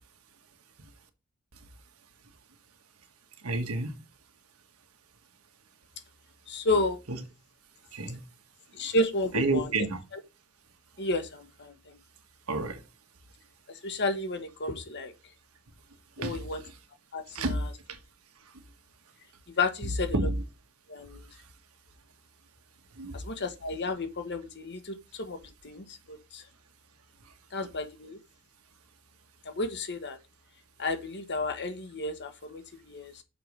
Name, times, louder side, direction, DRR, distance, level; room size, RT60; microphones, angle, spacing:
voice 1, 3.4-4.0 7.1-7.2 7.9-8.2 9.3-10.0 12.5-12.8 16.2-16.4 17.3-17.6 19.8-20.4 23.0-23.1, right 2 dB, 85° right, 1.5 m, -29 dB
voice 2, 6.5-7.0 8.7-9.7 11.0-12.0 13.7-15.1 16.2-16.6 17.1-17.6 19.6-20.2 20.9-21.3 23.1-25.4 25.6-26.4 27.5-28.2 29.4-30.2 30.8-33.2, left 2 dB, 55° left, 1.3 m, -32 dB
6.7 x 4.9 x 5.3 m
head